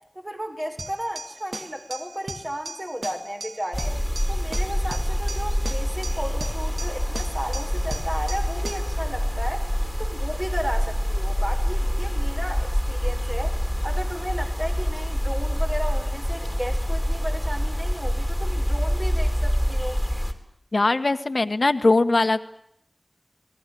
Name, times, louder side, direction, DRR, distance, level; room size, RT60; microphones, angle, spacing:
voice 1, 0.1-3.9 4.3-9.7 10.0-13.6 13.8-20.0, equal, 30° right, 2 dB, 6.8 m, -34 dB
sound 1, 0.8-9.0, right 2 dB, 85° right, 2.7 m, -38 dB
sound 2, 3.7-20.3, equal, ahead, 4.2 m, -26 dB
voice 2, 20.7-22.4, left 2 dB, 70° left, 11 dB, 1.5 m, -20 dB
30.0 x 20.5 x 8.5 m, 0.74 s
wide cardioid pair, 50°, 0 cm